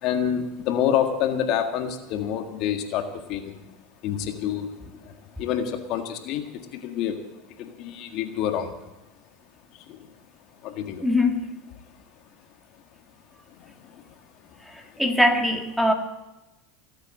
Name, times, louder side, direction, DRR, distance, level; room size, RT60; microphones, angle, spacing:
voice 1, 0.0-3.7 4.0-4.8 5.0-7.3 7.6-8.7 9.7-10.1 10.6-11.1 13.5-14.1 14.9-15.0, left 9 dB, 55° left, 6 dB, 1.7 m, -28 dB
voice 2, 11.0-11.5 14.7-15.9, left 1 dB, ahead, 4 dB, 2.0 m, -22 dB
19.0 x 8.2 x 7.7 m, 0.99 s
hypercardioid pair, 100°, 0 cm